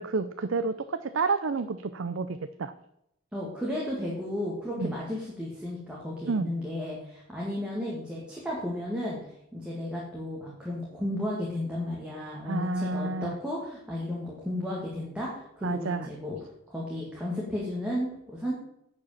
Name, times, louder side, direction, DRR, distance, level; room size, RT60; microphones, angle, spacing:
voice 1, 0.0-2.7 4.8-4.9 6.3-6.5 12.5-13.3 15.6-16.1, right 4 dB, 70° right, 11 dB, 0.5 m, -30 dB
voice 2, 3.3-9.2 9.5-16.4 16.7-18.5, left 1 dB, 5° right, -5 dB, 2.1 m, -33 dB
10.0 x 5.4 x 7.2 m, 0.77 s
head